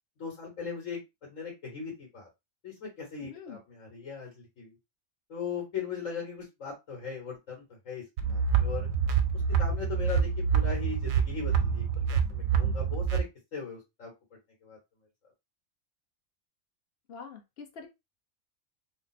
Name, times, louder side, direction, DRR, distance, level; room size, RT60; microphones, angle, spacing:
voice 1, 0.2-2.3 2.6-4.7 5.3-8.9 9.6-13.2 13.5-14.1 14.6-14.8, left 6 dB, 70° left, -2 dB, 1.6 m, -39 dB
voice 2, 3.2-3.6 17.1-17.9, left 6 dB, 55° left, 4 dB, 0.9 m, -45 dB
sound 1, 8.2-13.2, right 7 dB, 85° right, 1.0 m, -27 dB
3.3 x 2.0 x 4.1 m, 0.22 s
omnidirectional pair, 1.4 m